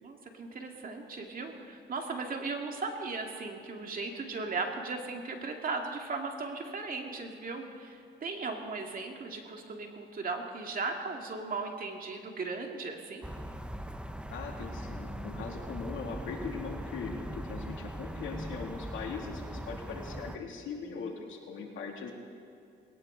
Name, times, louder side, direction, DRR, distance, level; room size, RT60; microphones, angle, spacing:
voice 1, 0.0-13.3, right 3 dB, 45° right, 2 dB, 2.3 m, -37 dB
sound 1, 13.2-20.4, right 1 dB, 5° right, 0.8 m, -40 dB
voice 2, 14.3-22.1, left 5 dB, 80° left, 0 dB, 2.7 m, -40 dB
20.0 x 18.5 x 3.9 m, 2.5 s
cardioid pair, 90°, 20 cm